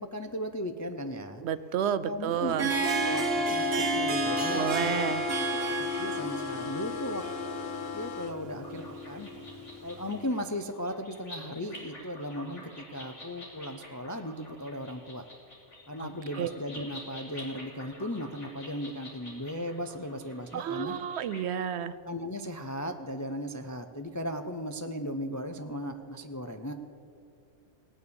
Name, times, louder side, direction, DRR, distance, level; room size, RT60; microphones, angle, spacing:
voice 1, 0.0-1.4 2.0-5.1 5.4-7.2 7.9-9.3 9.8-15.2 15.9-21.0 22.0-26.7, equal, 25° left, 6 dB, 0.3 m, -37 dB
voice 2, 1.4-2.7 4.5-5.2 16.0-16.1 16.4-16.5 20.5-22.0, right 9 dB, 70° right, 14 dB, 0.8 m, -30 dB
Harp, 2.3-10.0, right 1 dB, 55° right, 1.4 m, -31 dB
sound 1, 4.2-8.4, left 9 dB, 55° left, 0.8 m, -38 dB
sound 2, 8.6-21.4, left 1 dB, 70° left, 3.5 m, -48 dB
17.5 x 9.5 x 6.9 m, 2.4 s
omnidirectional pair, 1.3 m